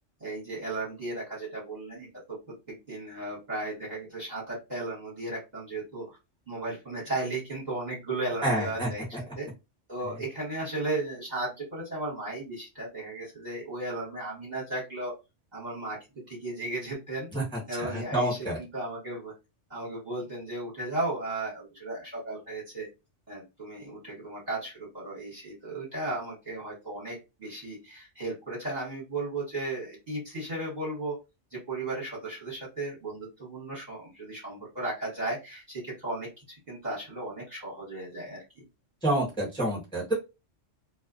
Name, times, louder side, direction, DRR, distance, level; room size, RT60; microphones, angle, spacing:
voice 1, 0.2-2.4 2.7-6.2 6.5-9.0 9.4-9.5 9.9-15.1 15.5-17.3 17.7-19.3 19.7-22.9 23.3-31.2 31.5-38.6, right 2 dB, 35° right, -4 dB, 1.2 m, -35 dB
voice 2, 8.4-8.9 17.3-17.4 17.8-18.6 39.0-40.1, right 1 dB, 5° left, -4 dB, 1.0 m, -28 dB
2.3 x 2.2 x 2.4 m, 0.26 s
omnidirectional pair, 1.3 m